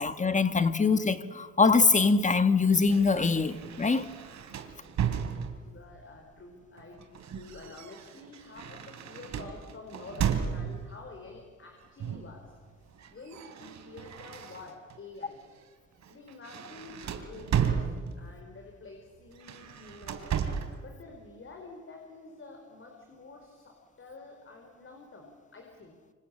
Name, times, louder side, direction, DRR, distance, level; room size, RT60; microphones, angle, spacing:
voice 1, 0.0-4.0, left 4 dB, 25° left, 1.6 m, -23 dB
sound 1, 2.7-5.8 6.8-11.0 12.0-12.4 12.7-15.0 15.4-15.6 16.0-18.4 19.3-20.8, right 8 dB, 65° right, 3.0 m, -34 dB
voice 2, 4.6-5.2 5.6-12.5 13.1-15.4 16.1-17.9 18.1-20.3 20.8-26.0, left 3 dB, 40° left, 4.9 m, -48 dB
26.5 x 24.5 x 8.8 m
cardioid pair, 90°, 30 cm